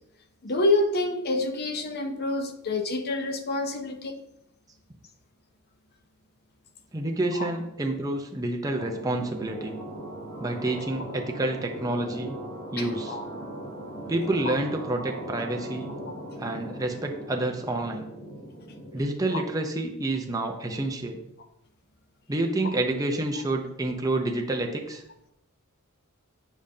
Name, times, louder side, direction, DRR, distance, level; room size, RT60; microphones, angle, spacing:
voice 1, 0.4-4.2 12.8-13.2 14.5-14.6 19.3-19.4, left 2 dB, 45° left, 7 dB, 0.6 m, -27 dB
voice 2, 6.9-9.8 10.4-12.4 12.7-13.2 14.1-15.9 16.4-18.1 18.9-21.2 22.3-25.0, right 2 dB, 15° right, 2 dB, 0.6 m, -28 dB
sound 1, 8.7-19.0, right 1 dB, 90° left, 2.4 m, -39 dB
7.3 x 5.0 x 2.7 m, 0.81 s
head